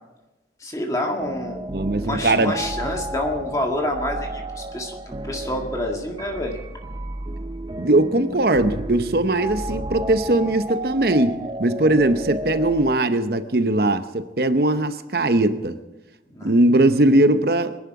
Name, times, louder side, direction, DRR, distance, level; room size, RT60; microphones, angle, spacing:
voice 1, 0.6-1.6 1.9-6.6 16.3-16.5, left 1 dB, 20° left, 1.8 m, -28 dB
sound 1, 1.2-13.0, right 1 dB, 25° right, 0.6 m, -32 dB
voice 2, 1.7-2.6 7.8-15.8 16.4-17.8, right 2 dB, 60° right, 0.8 m, -20 dB
23.5 x 11.0 x 4.8 m
head